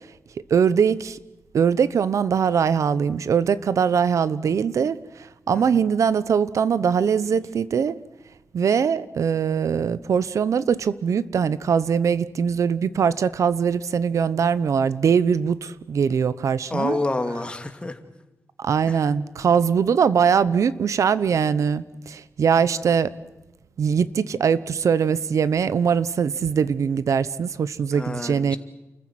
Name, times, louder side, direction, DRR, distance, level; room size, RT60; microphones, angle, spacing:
voice 1, 0.5-1.2 1.5-7.9 8.5-17.0 18.6-23.1 23.8-28.6, right 7 dB, 85° right, 17 dB, 0.9 m, -22 dB
voice 2, 5.5-5.9 16.7-18.0 18.9-19.0 27.9-28.6, left 2 dB, 20° left, 6 dB, 2.6 m, -28 dB
29.0 x 15.0 x 9.4 m, 1.0 s
wide cardioid pair, 90°, 5 cm